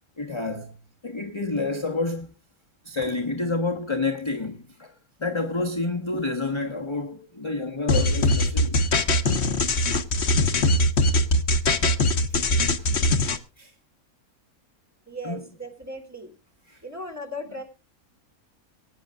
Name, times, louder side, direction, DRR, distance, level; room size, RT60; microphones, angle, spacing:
voice 1, 0.2-0.8 1.0-2.3 2.8-8.9 12.3-12.4 12.8-12.9 13.6-13.7 15.2-15.5 16.7-16.8 17.4-17.5, left 3 dB, 20° left, 1.2 m, -29 dB
sound 1, 7.9-13.4, left 1 dB, 50° left, 1.3 m, -21 dB
voice 2, 15.1-16.3 16.8-17.6, equal, 10° right, 3.1 m, -37 dB
23.5 x 9.4 x 2.4 m
omnidirectional pair, 1.5 m